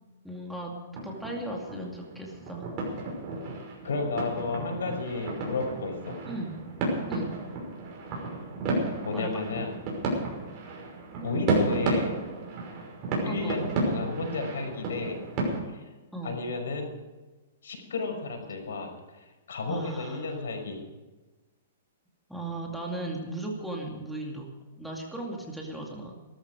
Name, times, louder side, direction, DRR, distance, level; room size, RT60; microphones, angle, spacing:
voice 1, 0.2-0.8 1.0-2.8 6.3-6.6 7.1-7.3 9.1-9.4 11.2-11.3 13.2-13.7 16.1-16.4 19.7-20.4 22.3-26.1, right 2 dB, ahead, -1 dB, 2.4 m, -36 dB
sound 1, 0.9-15.6, right 2 dB, 30° right, 5.8 m, -32 dB
voice 2, 3.8-6.2 9.0-9.7 11.2-12.1 13.2-15.2 15.7-15.9 16.2-16.9 17.6-20.8, left 3 dB, 90° left, 4 dB, 5.8 m, -33 dB
18.5 x 13.5 x 4.9 m, 1.2 s
hypercardioid pair, 160°, 0 cm